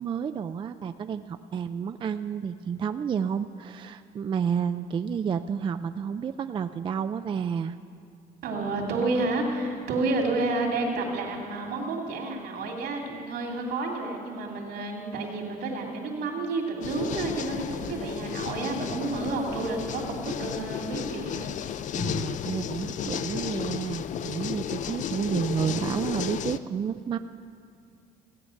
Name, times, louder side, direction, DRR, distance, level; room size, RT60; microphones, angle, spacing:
voice 1, 0.0-7.8 21.9-27.2, right 7 dB, 30° right, 10 dB, 0.3 m, -30 dB
voice 2, 8.4-21.5, right 3 dB, 75° right, 0 dB, 2.7 m, -30 dB
sound 1, 16.8-26.6, left 9 dB, 45° left, 0.4 m, -33 dB
16.0 x 8.5 x 6.4 m, 2.4 s
cardioid pair, 110°, 17 cm